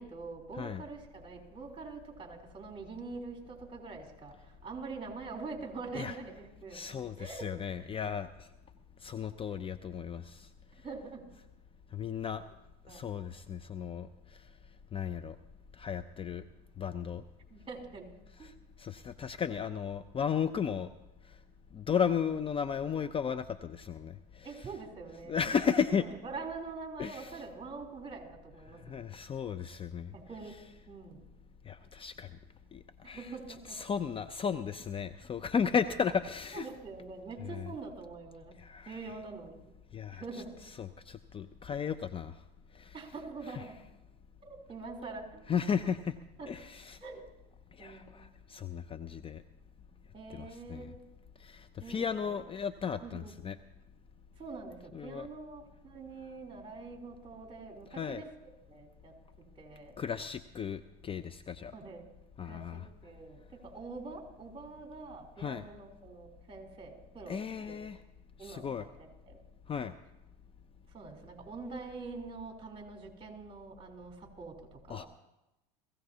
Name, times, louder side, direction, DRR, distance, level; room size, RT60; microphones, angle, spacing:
voice 1, 0.0-7.5 10.8-11.2 12.9-13.2 17.5-18.1 18.4-18.5 24.4-29.1 30.1-30.6 30.9-31.3 33.0-33.8 36.5-38.6 38.8-39.6 40.1-40.6 42.9-43.8 44.4-45.4 46.4-46.5 47.0-47.2 47.8-48.3 50.1-51.0 51.8-52.5 53.0-53.3 54.4-58.3 58.7-59.1 59.6-60.0 61.7-62.0 62.4-67.8 68.4-69.4 70.9-75.1, right 4 dB, 25° right, 2 dB, 3.5 m, -45 dB
voice 2, 6.7-8.5 9.0-10.5 11.9-12.4 12.9-14.5 14.9-15.4 15.7-16.4 16.8-17.2 18.4-20.9 21.3-21.4 21.7-24.5 25.3-26.1 27.0-27.3 28.7-30.1 31.6-32.4 32.7-33.3 33.7-36.7 37.4-37.7 38.6-39.0 39.9-40.2 40.8-42.4 42.7-42.9 43.5-43.6 45.5-46.2 46.5-47.0 47.7-49.4 50.3-50.9 51.4-53.6 54.9-55.3 58.0-58.2 60.0-61.7 62.4-62.9 65.4-65.6 67.3-68.0 68.4-68.8 69.7-69.9 74.9-75.1, left 7 dB, 25° left, 12 dB, 0.5 m, -35 dB
22.0 x 15.5 x 2.8 m, 0.93 s
supercardioid pair, 95°, 20 cm